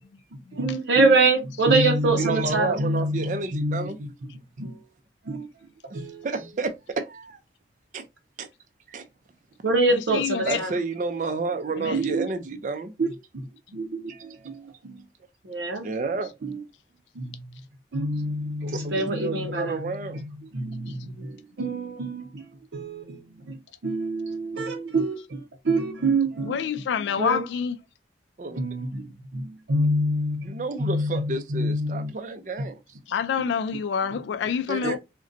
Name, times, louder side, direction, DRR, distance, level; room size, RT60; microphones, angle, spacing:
voice 1, 0.5-3.9 4.6-4.8 5.3-5.5 5.9-6.3 9.6-10.7 11.8-12.3 13.0-13.4 13.7-15.0 15.4-15.9 16.4-16.6 17.2-17.4 17.9-19.8 20.5-22.4 22.7-23.6 23.8-26.6 27.2-27.4 28.6-29.1 29.3-32.1 33.4-33.6 34.1-34.2 34.8-35.0, right 2 dB, 90° right, 0.6 m, -26 dB
voice 2, 2.2-4.1 5.9-7.4 7.9-8.0 8.4-8.5 8.9-9.0 10.5-12.9 14.1-14.3 15.8-16.3 18.6-20.2 28.4-28.6 30.4-32.8 34.7-35.0, right 4 dB, 45° right, 0.4 m, -30 dB
voice 3, 10.1-10.6 11.8-12.0 26.4-27.8 33.1-35.0, left 7 dB, 85° left, 0.3 m, -27 dB
3.8 x 2.2 x 2.5 m
head